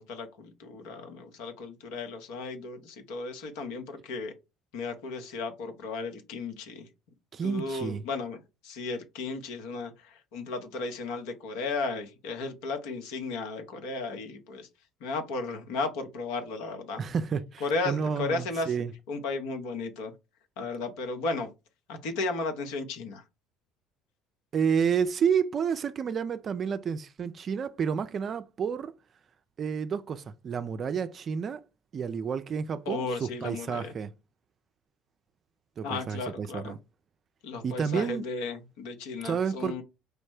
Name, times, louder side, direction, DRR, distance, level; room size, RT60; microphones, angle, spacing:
voice 1, 0.0-4.3 4.7-6.8 7.4-8.4 8.6-14.7 15.0-17.0 17.6-18.7 19.1-20.1 20.6-21.5 21.9-23.2 32.9-33.9 35.8-36.7 37.4-39.8, left 3 dB, 80° left, 1.0 m, -34 dB
voice 2, 7.3-8.1 17.0-18.9 24.5-28.9 29.6-31.6 31.9-34.1 35.8-36.8 37.6-38.3 39.2-39.8, right 6 dB, 45° right, 0.4 m, -30 dB
4.9 x 2.1 x 4.7 m
hypercardioid pair, 70°, 0 cm